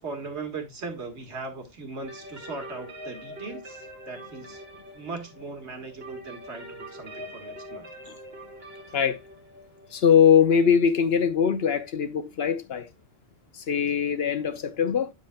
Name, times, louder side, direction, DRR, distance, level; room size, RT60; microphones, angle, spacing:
voice 1, 0.0-4.6 4.9-7.9, right 4 dB, 80° right, 1.9 m, -38 dB
sound 1, 2.0-11.7, equal, 60° right, 1.8 m, -44 dB
voice 2, 9.9-12.9 13.5-15.1, left 7 dB, 65° left, 1.1 m, -22 dB
9.2 x 7.0 x 2.2 m
omnidirectional pair, 1.1 m